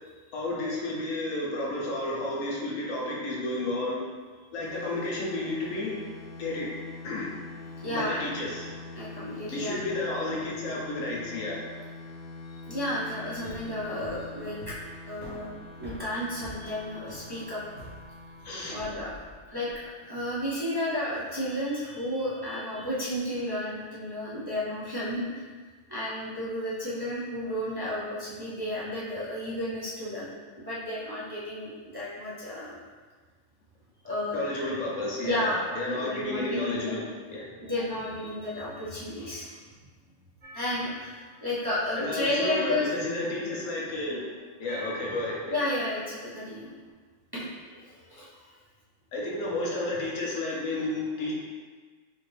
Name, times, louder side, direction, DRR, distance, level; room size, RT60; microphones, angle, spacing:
voice 1, 0.3-4.0 4.5-6.0 6.4-6.7 7.0-7.3 7.9-8.7 9.5-11.6 18.4-18.8 34.3-37.5 42.0-44.3 44.6-45.6 49.1-51.3, left 2 dB, 85° left, -3 dB, 1.2 m, -32 dB
sound 1, 4.6-20.0, left 3 dB, 60° left, 0.6 m, -45 dB
voice 2, 7.8-8.2 9.0-10.0 10.3-10.4 12.7-14.8 15.1-17.6 18.7-19.1 19.5-25.4 25.9-32.8 34.0-34.4 35.2-37.0 37.6-39.6 40.5-42.9 45.5-46.7 47.3-48.5, left 1 dB, 25° right, -9 dB, 0.5 m, -32 dB
sound 2, 13.4-19.9, equal, 90° right, 1.7 m, -47 dB
sound 3, 40.4-41.7 42.4-44.0 44.7-46.2, equal, 70° right, 1.2 m, -47 dB
4.3 x 2.5 x 3.2 m, 1.5 s
omnidirectional pair, 1.3 m